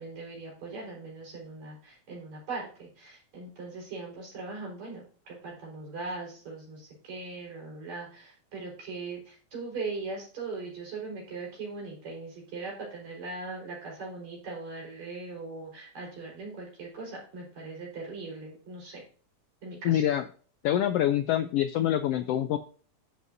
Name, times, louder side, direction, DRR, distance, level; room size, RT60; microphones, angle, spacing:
voice 1, 0.0-19.0 19.6-20.0, right 3 dB, 70° right, -3 dB, 5.6 m, -40 dB
voice 2, 19.8-20.2 20.6-22.6, left 11 dB, 90° left, 9 dB, 1.3 m, -25 dB
11.0 x 8.3 x 2.6 m, 0.42 s
omnidirectional pair, 3.3 m